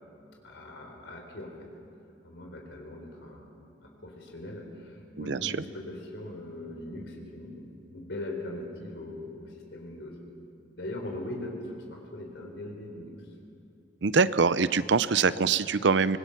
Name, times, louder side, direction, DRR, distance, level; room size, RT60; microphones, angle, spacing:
voice 1, 0.4-1.7 2.2-3.5 3.8-10.1 10.8-13.1, left 1 dB, 75° left, 1 dB, 4.1 m, -40 dB
voice 2, 5.2-5.5 14.0-16.2, right 5 dB, 70° right, 16 dB, 0.6 m, -24 dB
25.0 x 20.5 x 5.9 m, 2.8 s
head